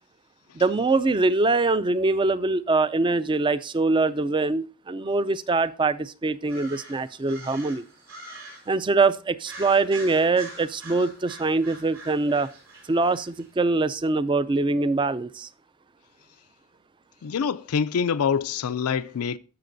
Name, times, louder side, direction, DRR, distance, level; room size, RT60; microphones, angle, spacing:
voice 1, 0.5-7.8 8.7-12.5 12.9-15.5, right 3 dB, 20° right, 0.4 m, -23 dB
sound 1, 6.4-8.7 9.4-13.5, right 2 dB, 75° right, 4.5 m, -44 dB
voice 2, 17.2-19.4, left 6 dB, 85° left, 0.4 m, -25 dB
15.0 x 6.6 x 2.6 m
head